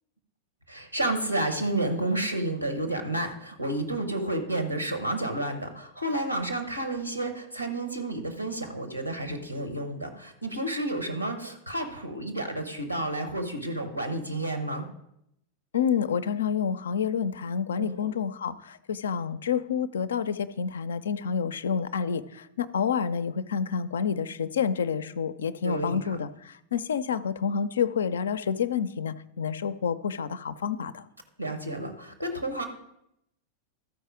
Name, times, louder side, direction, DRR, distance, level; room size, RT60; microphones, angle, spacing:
voice 1, 0.7-14.8 17.8-18.1 25.6-26.0 31.4-32.7, right 1 dB, 90° right, 6 dB, 1.2 m, -31 dB
voice 2, 15.7-31.0, left 7 dB, 65° left, 15 dB, 0.4 m, -29 dB
13.5 x 4.7 x 4.9 m, 0.79 s
figure-of-eight pair, 90°, 0 cm